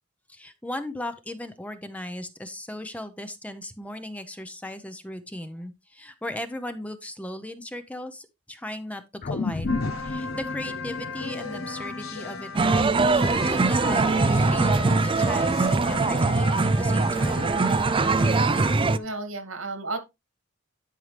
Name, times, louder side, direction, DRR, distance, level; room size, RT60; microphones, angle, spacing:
voice 1, 0.3-9.7 10.0-17.5, left 1 dB, 5° left, 0.7 m, -37 dB
sound 1, 9.2-13.7 14.1-14.2, left 3 dB, 45° left, 0.5 m, -33 dB
sound 2, 9.7-18.8, left 5 dB, 80° left, 1.1 m, -36 dB
sound 3, 12.5-19.0, right 3 dB, 25° right, 0.4 m, -22 dB
voice 2, 18.8-20.0, right 2 dB, 75° right, 2.1 m, -33 dB
11.0 x 5.5 x 3.3 m
head